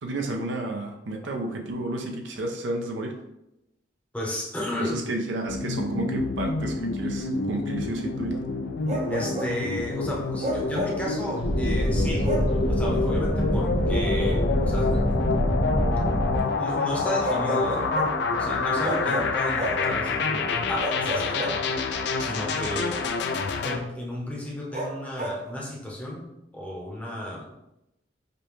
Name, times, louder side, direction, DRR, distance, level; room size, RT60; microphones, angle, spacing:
voice 1, 0.0-3.2 4.8-8.4, right 2 dB, 85° right, 3 dB, 0.6 m, -31 dB
voice 2, 4.1-5.0 9.1-12.4 12.7-15.0 16.5-17.9 18.4-21.6 22.2-23.0 23.6-27.5, left 1 dB, 10° left, -3 dB, 0.7 m, -33 dB
sound 1, 5.5-23.8, left 4 dB, 65° left, 0.4 m, -28 dB
Bark, 8.9-9.6 10.4-11.1 12.2-12.6 14.3-14.4 17.2-18.2 18.8-19.9 20.8-22.0 24.7-25.4, right 1 dB, 40° right, 0.6 m, -31 dB
sound 2, 11.4-16.4, equal, 80° left, 1.0 m, -25 dB
5.2 x 2.2 x 3.1 m, 0.88 s
head